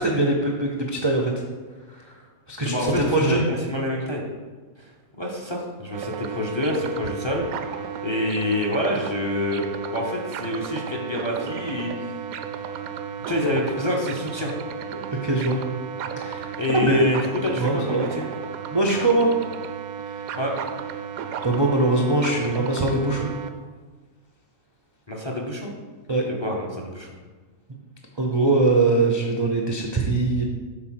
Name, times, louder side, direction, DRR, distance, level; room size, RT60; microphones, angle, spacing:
voice 1, 0.0-1.3 1.9-2.2 2.5-3.4 14.9-15.6 16.2-17.0 17.6-18.0 18.7-19.3 21.4-23.3 26.1-26.2 28.2-30.4, right 2 dB, 35° right, 0 dB, 0.4 m, -22 dB
voice 2, 2.6-4.2 4.8-4.9 5.1-12.1 13.3-14.5 16.6-18.2 20.4-20.6 25.1-25.7 26.3-27.1, left 1 dB, 25° left, 0 dB, 0.7 m, -27 dB
sound 1, 5.9-23.5, right 7 dB, 75° right, 1.0 m, -34 dB
6.8 x 4.0 x 5.9 m, 1.4 s
omnidirectional pair, 1.5 m